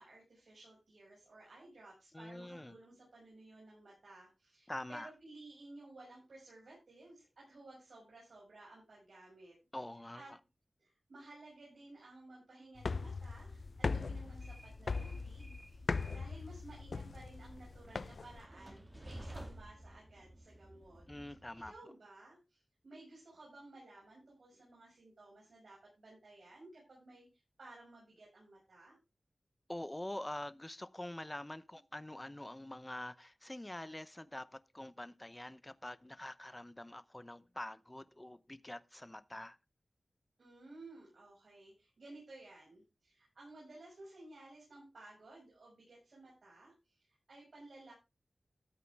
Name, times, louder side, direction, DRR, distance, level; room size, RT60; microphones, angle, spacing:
voice 1, 0.0-9.6 10.1-10.3 10.8-21.4 21.6-29.0 40.4-47.9, right 2 dB, 80° right, 6.2 m, -56 dB
voice 2, 2.1-2.8 4.7-5.1 9.7-10.2 21.1-21.7 29.7-39.6, left 1 dB, 20° left, 0.7 m, -45 dB
sound 1, 12.8-18.4, left 4 dB, 70° left, 0.5 m, -39 dB
Train, 13.4-21.7, right 1 dB, 20° right, 2.7 m, -54 dB
13.5 x 8.2 x 3.5 m
wide cardioid pair, 70°, 0 cm